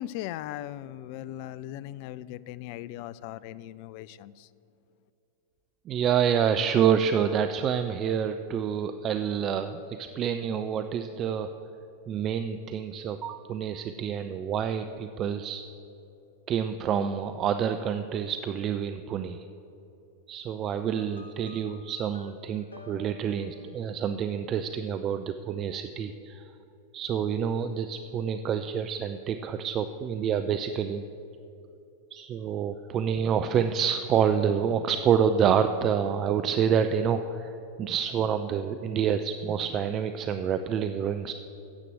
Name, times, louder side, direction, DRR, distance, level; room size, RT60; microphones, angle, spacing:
voice 1, 0.0-4.5, left 13 dB, 45° left, 18 dB, 0.3 m, -38 dB
voice 2, 5.9-11.5 12.1-15.7 16.5-19.5 20.3-26.5 26.9-31.0 32.1-41.3, right 8 dB, 30° right, 9 dB, 0.4 m, -28 dB
sound 1, 20.9-24.3, left 4 dB, 80° left, 0.9 m, -52 dB
9.6 x 7.5 x 7.7 m, 2.9 s
figure-of-eight pair, 90°, 0 cm